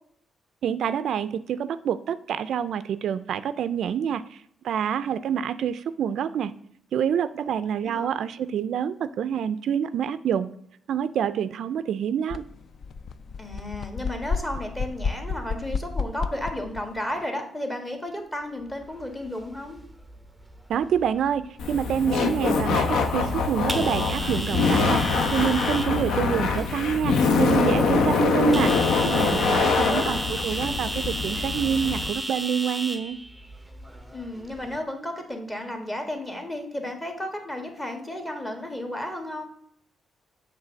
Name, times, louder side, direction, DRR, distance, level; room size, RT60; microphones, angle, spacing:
voice 1, 0.6-6.5 6.9-10.5 10.9-12.4 20.7-28.7 29.0-33.2, right 8 dB, 70° right, 14 dB, 0.3 m, -27 dB
voice 2, 7.8-8.2 13.4-19.8 29.7-30.2 34.1-39.4, left 1 dB, 15° left, 4 dB, 1.4 m, -33 dB
sound 1, 12.3-12.4 12.7-16.9, left 5 dB, 50° left, 0.4 m, -31 dB
sound 2, 18.7-34.8, right 1 dB, 5° right, 0.7 m, -35 dB
Laughter, 21.6-32.1, left 4 dB, 80° left, 0.8 m, -24 dB
7.4 x 3.4 x 6.3 m, 0.71 s
cardioid pair, 115°, 0 cm